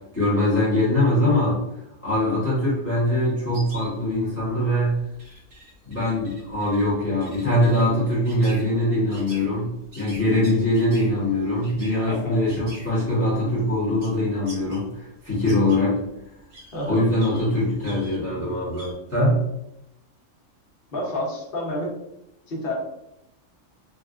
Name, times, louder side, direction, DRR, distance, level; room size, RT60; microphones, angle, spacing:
voice 1, 0.1-1.6 2.0-5.0 5.8-16.0 16.9-19.4, left 1 dB, 10° left, -9 dB, 0.9 m, -22 dB
sound 1, 3.5-14.9 15.2-18.9, equal, 85° right, 1.5 m, -46 dB
voice 2, 12.1-12.4 16.7-17.0 20.9-21.9 22.5-22.7, left 1 dB, 45° left, -3 dB, 1.0 m, -29 dB
3.5 x 2.3 x 2.4 m, 0.83 s
omnidirectional pair, 1.3 m